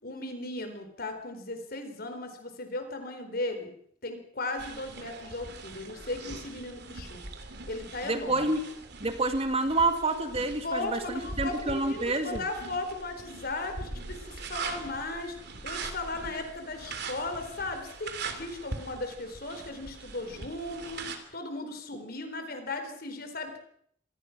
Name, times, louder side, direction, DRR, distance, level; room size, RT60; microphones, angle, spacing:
voice 1, 0.0-3.7 4.0-7.2 7.7-8.4 10.6-15.4 15.6-21.0 21.3-23.6, left 2 dB, 55° left, 7 dB, 4.3 m, -36 dB
sound 1, 4.6-21.2, right 3 dB, 60° right, 3.2 m, -42 dB
voice 2, 8.0-8.7 9.0-12.4, right 2 dB, 30° right, 7 dB, 2.1 m, -28 dB
27.0 x 19.5 x 6.1 m, 0.66 s
head